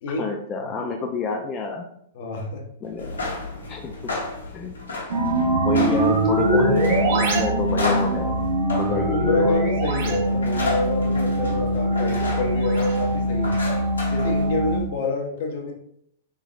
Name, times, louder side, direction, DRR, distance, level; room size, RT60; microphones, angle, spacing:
voice 1, 0.2-1.8 2.8-3.2 3.7-4.1 4.5-4.7 5.5-8.3 8.8-9.5, left 4 dB, 30° left, 1 dB, 0.4 m, -29 dB
voice 2, 2.1-2.7 8.9-13.6 14.1-15.7, left 2 dB, 55° left, 2 dB, 0.8 m, -27 dB
sound 1, 2.9-14.8, left 3 dB, 85° left, 1.0 m, -33 dB
sound 2, 5.1-14.8, right 1 dB, 55° right, 0.7 m, -22 dB
3.4 x 3.3 x 2.4 m, 0.71 s
hypercardioid pair, 110°, 0 cm